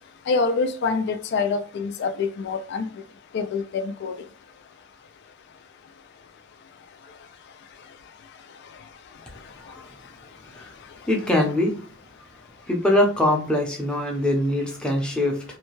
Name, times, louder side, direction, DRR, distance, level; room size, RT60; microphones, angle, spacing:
voice 1, 0.3-2.9 3.3-4.2, left 4 dB, 55° left, 0.3 m, -25 dB
voice 2, 11.1-11.8 12.6-15.4, left 1 dB, 5° left, 0.6 m, -23 dB
2.6 x 2.2 x 2.9 m
head